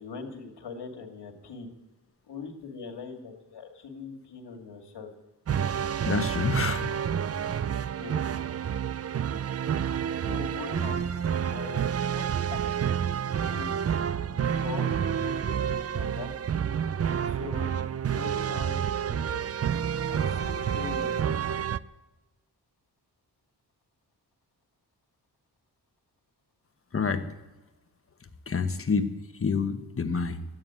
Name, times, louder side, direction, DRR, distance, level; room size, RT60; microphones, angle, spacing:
voice 1, 0.0-1.7 2.3-5.1 8.0-8.3 10.2-11.1 11.5-12.3 12.5-12.8 13.2-13.8 14.3-16.3 17.2-17.7 18.1-19.5 20.0-21.5, left 5 dB, 90° left, 4 dB, 2.2 m, -42 dB
sound 1, 5.5-21.8, right 8 dB, 40° right, 0.4 m, -29 dB
voice 2, 6.0-6.9 26.9-27.3 28.5-30.4, left 5 dB, 35° left, 8 dB, 1.1 m, -28 dB
13.0 x 9.6 x 9.0 m, 1.1 s
wide cardioid pair, 100°, 40 cm